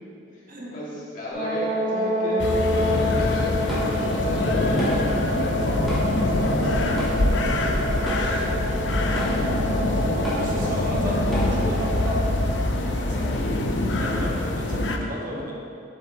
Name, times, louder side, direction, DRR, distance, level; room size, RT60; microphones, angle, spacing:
voice 1, 0.7-7.1 7.3-9.0 10.5-10.7, equal, 45° left, -7 dB, 2.1 m, -36 dB
sound 1, 1.3-12.2, equal, 80° right, 2.1 m, -27 dB
sound 2, 2.4-15.0, left 1 dB, 70° left, 0.7 m, -24 dB
Drum kit / Drum, 3.2-11.8, right 1 dB, ahead, 1.7 m, -31 dB
voice 2, 6.6-7.0 10.4-15.5, equal, 50° right, -3 dB, 1.4 m, -35 dB
11.0 x 7.6 x 3.0 m, 2.6 s
head